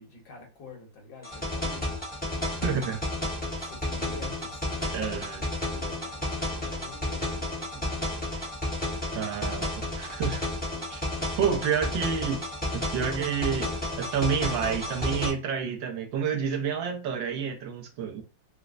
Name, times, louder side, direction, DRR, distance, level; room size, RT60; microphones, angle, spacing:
voice 1, 0.0-2.0 3.5-8.3 11.7-11.8, left 4 dB, 85° left, 1.8 m, -47 dB
sound 1, 1.2-15.3, left 1 dB, 5° left, 0.7 m, -32 dB
voice 2, 2.6-3.0 4.9-5.4 9.1-10.4 10.9-11.0 11.4-12.4 12.7-13.7 14.0-18.2, right 7 dB, 75° right, 1.4 m, -29 dB
4.3 x 2.0 x 2.4 m
omnidirectional pair, 2.1 m